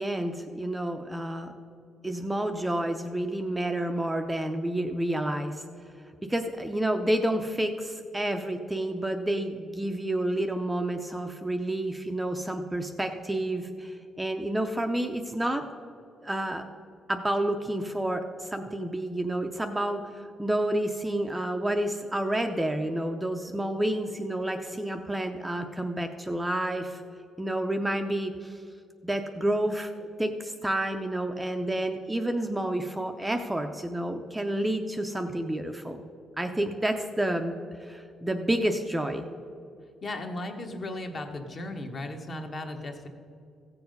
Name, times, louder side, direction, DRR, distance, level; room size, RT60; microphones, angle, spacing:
voice 1, 0.0-1.5 2.0-5.6 6.2-15.7 16.2-16.7 17.1-27.0 27.4-28.6 29.0-36.0 36.4-39.3, right 1 dB, 10° right, 5 dB, 0.5 m, -29 dB
voice 2, 40.0-43.1, left 2 dB, 35° left, 4 dB, 1.1 m, -36 dB
15.0 x 7.1 x 5.3 m, 2.6 s
cardioid pair, 145°, 0 cm